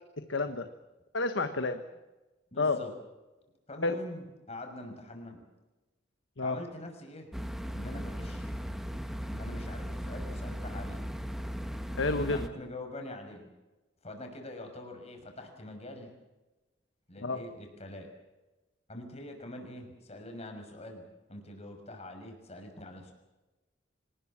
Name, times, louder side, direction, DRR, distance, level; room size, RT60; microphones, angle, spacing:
voice 1, 0.3-0.7 1.1-1.8 2.6-2.8 3.8-4.0 6.4-6.6 11.9-12.4 17.2-17.4, left 3 dB, 85° left, 8 dB, 1.3 m, -29 dB
voice 2, 2.5-2.9 3.7-5.4 6.4-7.3 7.7-8.6 9.3-11.0 12.3-13.5 14.0-16.1 17.1-18.1 18.9-21.0 21.3-23.1, left 1 dB, 35° left, 4 dB, 6.1 m, -44 dB
sound 1, 7.3-12.5, equal, ahead, 1.6 m, -37 dB
26.0 x 20.0 x 7.5 m, 1.1 s
head